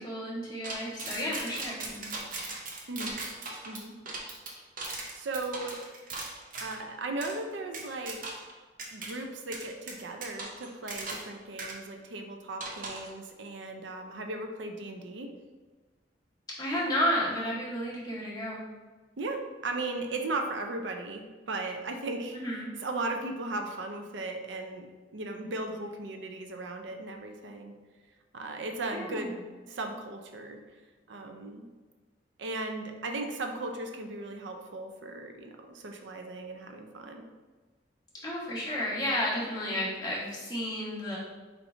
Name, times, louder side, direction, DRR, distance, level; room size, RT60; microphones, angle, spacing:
voice 1, 0.0-2.0 16.6-18.6 22.3-22.7 28.9-29.3 38.2-41.2, equal, 20° left, -8 dB, 1.4 m, -32 dB
sound 1, 0.6-6.8 7.2-7.4 7.7-8.5 8.8-9.1 9.5-11.3 11.6-11.7 12.6-13.1, right 3 dB, 50° right, 0.8 m, -38 dB
voice 2, 2.9-3.2 3.7-4.0 4.3-4.4 5.1-5.8 6.6-8.4 8.9-15.3 19.2-22.4 22.8-24.9 25.1-27.7 28.3-30.6 31.1-31.6 32.4-37.2, right 2 dB, 90° right, 5 dB, 0.5 m, -37 dB
4.4 x 4.3 x 2.7 m, 1.3 s
head